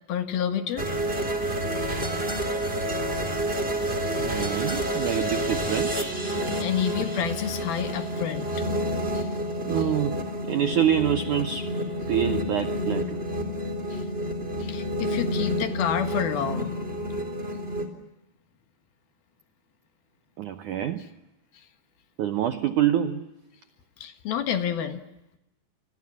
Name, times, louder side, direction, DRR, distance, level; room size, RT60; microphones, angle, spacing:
voice 1, 0.1-0.9 6.6-9.3 9.8-9.9 13.9-14.1 14.6-16.7 24.0-25.0, left 9 dB, 65° left, 8 dB, 3.1 m, -29 dB
sound 1, 0.8-17.9, equal, 15° right, 3.3 m, -29 dB
voice 2, 4.2-6.2 9.6-11.7 12.1-13.2 20.4-21.1 22.2-23.3, right 10 dB, 80° right, 10 dB, 1.7 m, -26 dB
29.0 x 27.5 x 7.3 m, 0.91 s
omnidirectional pair, 5.2 m